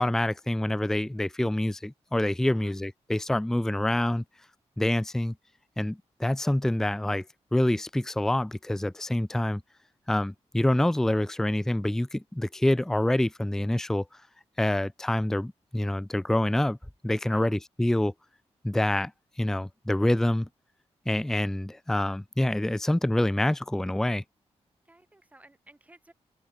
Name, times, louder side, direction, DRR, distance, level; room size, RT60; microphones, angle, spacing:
voice 1, 0.0-4.2 4.8-5.3 5.8-7.2 7.5-9.6 10.1-14.1 14.6-16.8 17.0-18.1 18.6-19.1 19.4-20.5 21.1-24.2, left 1 dB, 5° left, 0.5 m, -26 dB
voice 2, 2.4-2.8 17.2-17.6 24.9-26.1, right 2 dB, 15° right, 3.8 m, -56 dB
wide cardioid pair, 140°, 11 cm